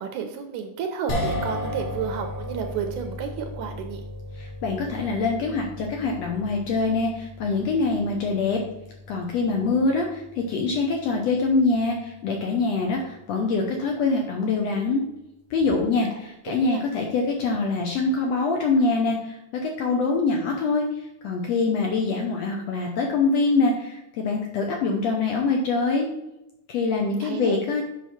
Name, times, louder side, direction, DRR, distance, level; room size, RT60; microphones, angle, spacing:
voice 1, 0.0-4.0 16.5-16.8 26.9-27.6, right 7 dB, 75° right, 6 dB, 1.9 m, -32 dB
sound 1, 1.1-13.4, left 1 dB, 45° left, 2.0 m, -36 dB
voice 2, 4.3-8.6 9.1-15.0 15.5-26.1 26.7-27.8, left 3 dB, 70° left, 1 dB, 1.6 m, -24 dB
7.5 x 5.5 x 4.2 m, 0.89 s
omnidirectional pair, 3.7 m